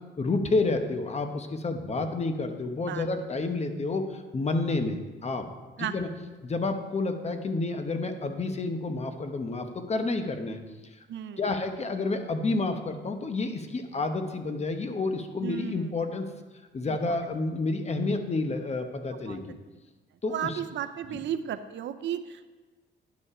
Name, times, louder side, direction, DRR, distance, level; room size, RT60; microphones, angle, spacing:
voice 1, 0.2-5.5 5.8-6.1 6.4-10.6 11.4-16.3 16.7-19.5 20.2-20.6 21.1-21.2, left 3 dB, 35° left, 7 dB, 0.9 m, -29 dB
voice 2, 11.1-11.5 15.4-15.9 16.9-17.2 19.2-19.4 20.3-22.4, right 10 dB, 65° right, 10 dB, 0.6 m, -34 dB
10.5 x 5.5 x 4.9 m, 1.2 s
cardioid pair, 90°, 20 cm